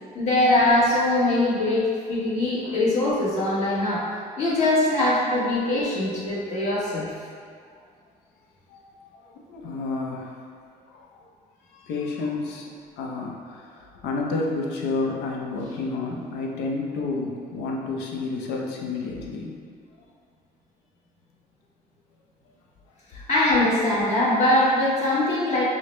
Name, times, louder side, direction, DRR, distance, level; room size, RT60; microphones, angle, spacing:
voice 1, 0.1-4.0 4.4-7.1 23.1-25.6, left 1 dB, 40° left, -8 dB, 1.2 m, -22 dB
voice 2, 8.7-10.4 10.9-11.2 11.7-12.7 13.0-19.6, left 3 dB, 85° left, -1 dB, 0.6 m, -30 dB
4.8 x 2.1 x 3.1 m, 2.1 s
cardioid pair, 110°, 17 cm